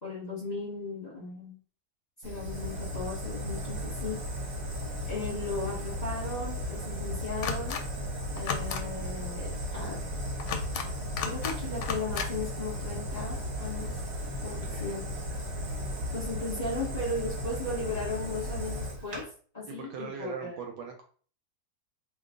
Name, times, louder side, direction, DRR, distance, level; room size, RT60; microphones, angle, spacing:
voice 1, 0.0-1.6 2.2-4.2 5.1-7.8 8.3-10.0 11.2-14.0 14.4-15.0 16.1-19.3 19.5-20.6, left 2 dB, 25° left, -6 dB, 1.2 m, -36 dB
Fire, 2.2-19.2, equal, 45° right, 0.9 m, -35 dB
sound 1, 7.4-7.8 8.4-8.8 10.4-10.9 11.2-11.6 11.8-12.3, left 6 dB, 75° left, 1.2 m, -33 dB
voice 2, 14.7-15.0 19.7-21.0, right 6 dB, 75° right, 3 dB, 1.1 m, -40 dB
2.9 x 2.4 x 3.6 m, 0.43 s
omnidirectional pair, 2.1 m